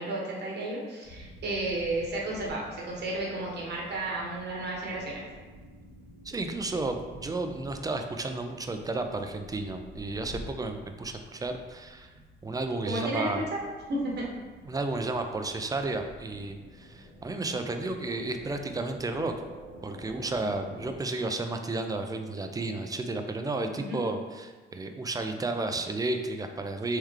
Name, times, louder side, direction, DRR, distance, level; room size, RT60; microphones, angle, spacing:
voice 1, 0.0-5.2 12.9-13.6 13.9-14.2 23.7-24.0, right 2 dB, 60° right, -3 dB, 1.0 m, -32 dB
sound 1, 1.0-21.0, equal, 75° left, 1.5 m, -49 dB
voice 2, 6.2-12.1 12.4-13.4 14.6-19.3 19.8-27.0, right 2 dB, 20° right, 6 dB, 0.4 m, -32 dB
3.5 x 3.2 x 3.2 m, 1.4 s
cardioid pair, 90°, 20 cm